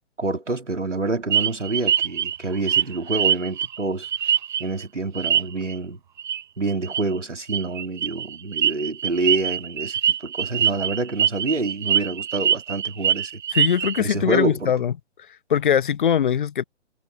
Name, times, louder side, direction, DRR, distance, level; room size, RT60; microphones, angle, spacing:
voice 1, 0.2-4.1 4.6-6.0 6.6-13.4 14.0-14.7, right 3 dB, 75° right, 2.6 m, -27 dB
sound 1, 1.3-4.8 5.1-5.7 6.2-6.4 6.7-7.0 7.5-14.0, right 9 dB, 40° right, 1.3 m, -23 dB
voice 2, 13.5-14.9 15.5-16.6, left 8 dB, 45° left, 0.9 m, -21 dB
figure-of-eight pair, 130°, 36 cm